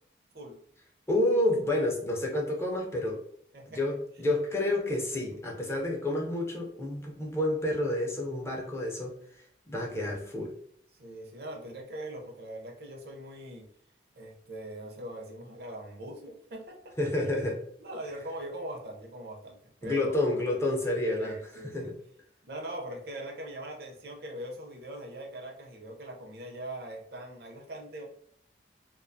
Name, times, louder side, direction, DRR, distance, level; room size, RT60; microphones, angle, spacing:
voice 1, 1.1-3.2 3.7-10.5 17.0-17.6 19.8-22.0, left 1 dB, 15° left, -1 dB, 0.4 m, -29 dB
voice 2, 10.9-13.7 14.1-16.9 17.8-20.3 21.2-21.9 22.4-28.0, right 1 dB, 55° right, 1 dB, 0.5 m, -41 dB
2.4 x 2.2 x 2.5 m, 0.66 s
head